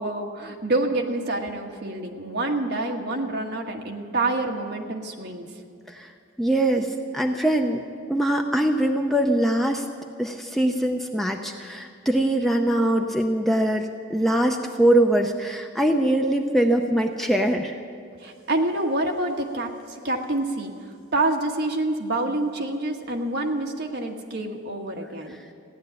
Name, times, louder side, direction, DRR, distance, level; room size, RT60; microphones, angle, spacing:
voice 1, 0.0-5.5 18.2-20.7 21.1-25.4, right 2 dB, 55° right, 2 dB, 1.4 m, -27 dB
voice 2, 6.4-7.8 8.1-9.9 10.2-17.8, right 1 dB, ahead, 3 dB, 0.6 m, -22 dB
15.5 x 10.5 x 8.9 m, 2.3 s
head